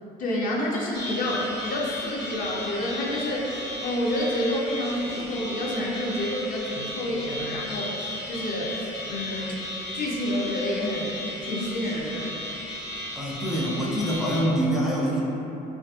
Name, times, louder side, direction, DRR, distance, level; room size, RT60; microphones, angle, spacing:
voice 1, 0.2-9.6 9.9-11.2 11.4-12.3, left 1 dB, 55° left, -3 dB, 0.5 m, -29 dB
sound 1, 0.9-14.4, left 1 dB, 90° left, 1.3 m, -35 dB
voice 2, 13.1-15.2, equal, ahead, -6 dB, 0.4 m, -25 dB
2.6 x 2.6 x 2.3 m, 3.0 s
cardioid pair, 110°, 17 cm